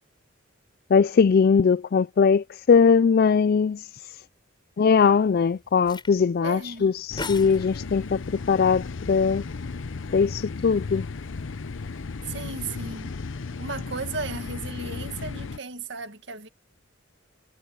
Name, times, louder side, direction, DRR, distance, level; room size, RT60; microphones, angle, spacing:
voice 1, 0.9-3.9 4.8-9.4 10.1-11.0, left 5 dB, 50° left, 0.3 m, -20 dB
sound 1, 4.9-12.7, left 3 dB, 25° left, 5.6 m, -45 dB
voice 2, 6.4-6.9 12.3-13.2 13.6-16.5, right 4 dB, 65° right, 2.0 m, -35 dB
sound 2, 7.1-15.6, left 4 dB, 75° left, 0.7 m, -35 dB
head